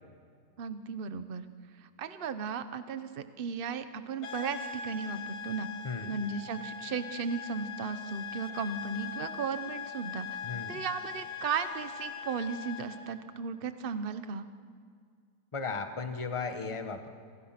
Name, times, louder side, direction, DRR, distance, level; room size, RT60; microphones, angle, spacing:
voice 1, 0.6-1.4 1.8-5.7 6.1-10.4 10.7-14.4, right 5 dB, 40° right, 11 dB, 0.9 m, -35 dB
sound 1, 4.2-13.1, left 7 dB, 45° left, 1.7 m, -41 dB
voice 2, 5.8-6.1 10.4-10.8 15.5-17.1, left 4 dB, 20° left, 7 dB, 1.1 m, -36 dB
28.0 x 26.5 x 6.0 m, 2.1 s
omnidirectional pair, 2.1 m